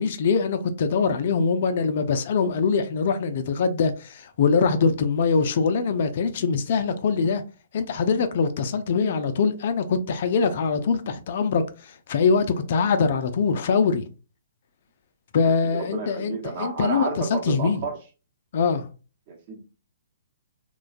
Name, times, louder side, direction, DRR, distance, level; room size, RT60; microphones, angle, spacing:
voice 1, 0.0-7.4 7.7-14.1 15.3-17.8 18.5-18.9, left 5 dB, 50° left, 0.3 m, -23 dB
voice 2, 15.6-17.9 19.3-19.6, right 4 dB, 45° right, 0.9 m, -31 dB
3.1 x 2.2 x 2.4 m
figure-of-eight pair, 125°, 0 cm